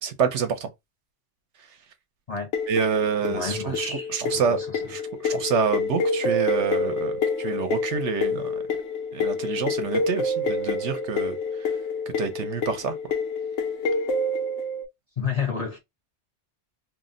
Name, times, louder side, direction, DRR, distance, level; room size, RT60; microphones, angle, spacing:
voice 1, 0.0-0.7 2.7-4.6 4.9-8.5 9.1-11.4 12.2-13.0, right 6 dB, 70° right, 0.9 m, -27 dB
sound 1, 2.5-14.8, left 3 dB, 80° left, 1.0 m, -28 dB
voice 2, 3.2-4.8 15.2-15.8, left 6 dB, 40° left, 0.6 m, -31 dB
2.6 x 2.0 x 3.7 m
omnidirectional pair, 1.3 m